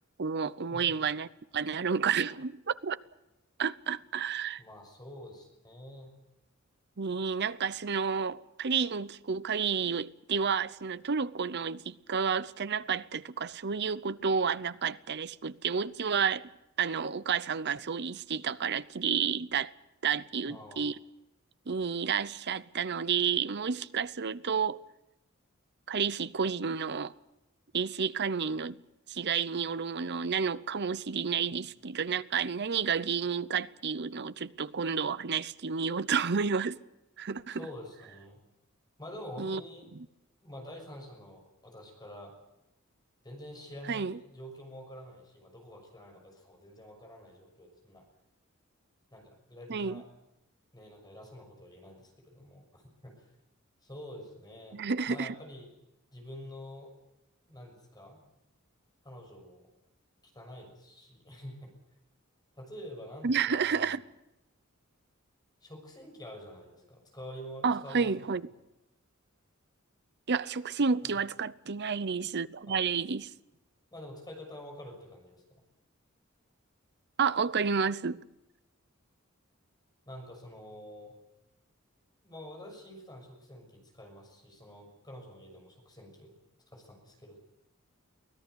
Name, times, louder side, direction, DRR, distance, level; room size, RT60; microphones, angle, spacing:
voice 1, 0.2-1.3 1.5-3.0 3.6-4.6 7.0-16.5 16.8-19.7 20.0-21.0 21.7-24.8 25.9-27.1 27.7-28.8 29.1-36.8 37.2-37.7 39.4-39.6 43.9-44.2 49.7-50.0 54.7-55.4 63.2-64.0 67.6-68.5 70.3-73.3 77.2-78.2, right 6 dB, 50° right, 0.7 m, -30 dB
voice 2, 4.6-6.1 20.4-20.9 37.5-38.4 39.0-39.9 40.4-42.3 43.2-48.0 49.1-50.1 50.7-53.1 53.8-54.8 55.1-55.7 56.1-56.9 57.5-58.2 59.0-59.7 60.3-61.7 62.6-63.9 65.6-68.1 71.0-71.1 72.7-72.8 73.9-75.4 80.1-81.2 82.2-86.3 86.7-87.4, equal, 20° left, 6.3 m, -47 dB
24.0 x 17.5 x 8.1 m
head